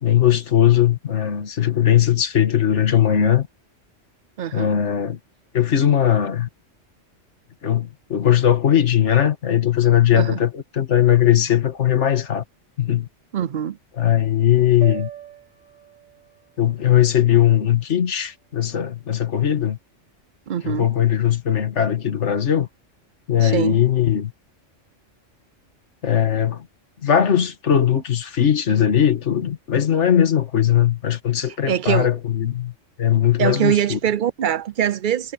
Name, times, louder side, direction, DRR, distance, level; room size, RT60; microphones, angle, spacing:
voice 1, 0.0-3.5 4.5-5.2 5.5-6.5 7.6-12.4 12.8-13.1 14.0-15.1 16.6-19.8 20.6-22.7 23.3-24.3 26.0-26.7 27.0-32.7 33.0-34.0, left 10 dB, 65° left, 1.8 m, -19 dB
voice 2, 4.4-4.7 10.1-10.4 13.3-13.8 20.5-20.9 23.4-23.8 31.7-32.2 33.4-35.3, right 10 dB, 55° right, 0.6 m, -23 dB
sound 1, 14.8-19.1, right 11 dB, 85° right, 2.7 m, -42 dB
omnidirectional pair, 1.3 m